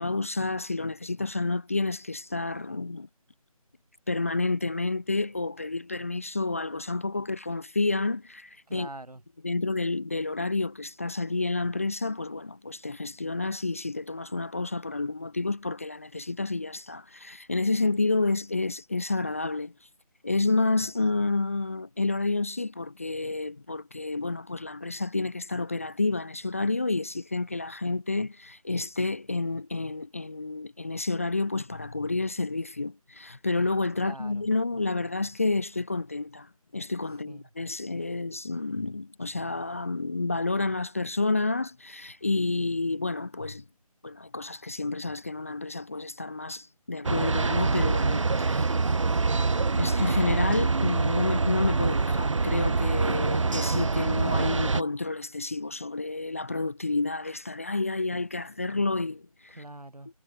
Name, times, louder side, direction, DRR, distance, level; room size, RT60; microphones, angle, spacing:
voice 1, 0.0-3.1 4.1-8.9 9.4-19.7 20.2-43.6 44.0-48.7 49.8-59.6, left 3 dB, 25° left, 0.5 m, -30 dB
voice 2, 8.7-9.2 34.0-34.3 37.3-37.4 48.7-49.4 59.6-60.1, right 2 dB, 80° right, 3.2 m, -43 dB
sound 1, 47.0-54.8, right 4 dB, 55° right, 1.4 m, -25 dB
figure-of-eight pair, 160°, 19 cm